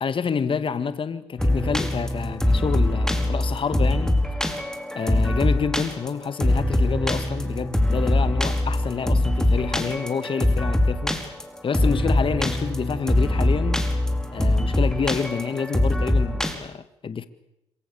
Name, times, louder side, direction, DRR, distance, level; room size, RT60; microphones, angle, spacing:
voice 1, 0.0-4.2 4.9-11.2 11.6-13.8 14.3-17.3, left 6 dB, 45° left, 1.8 m, -28 dB
sound 1, 1.4-16.5, left 1 dB, 5° left, 4.9 m, -23 dB
26.5 x 25.0 x 7.0 m
supercardioid pair, 60°, 12 cm